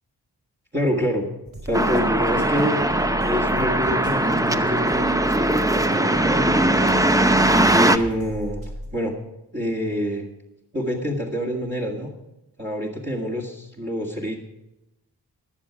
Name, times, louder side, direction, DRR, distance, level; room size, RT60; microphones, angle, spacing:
voice 1, 0.7-1.3 1.6-2.8 3.2-7.5 7.7-8.6 8.9-9.1 9.5-10.3 10.7-12.1 12.6-14.4, equal, 25° right, -4 dB, 2.0 m, -27 dB
sound 1, 1.5-8.9, right 1 dB, 50° right, 5.4 m, -36 dB
sound 2, 1.7-8.0, right 1 dB, 10° right, 0.6 m, -20 dB
21.0 x 7.3 x 4.8 m, 0.92 s
wide cardioid pair, 75°, 41 cm